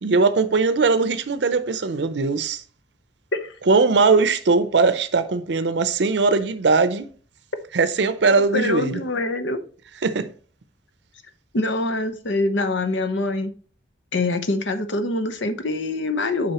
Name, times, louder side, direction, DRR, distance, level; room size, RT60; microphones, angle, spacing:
voice 1, 0.0-2.6 3.7-7.1 7.7-9.0 10.0-10.3, right 4 dB, 65° right, 0.6 m, -20 dB
voice 2, 8.5-9.6 11.5-13.5 14.1-16.5, left 2 dB, 80° left, 0.9 m, -24 dB
7.9 x 5.1 x 2.9 m
head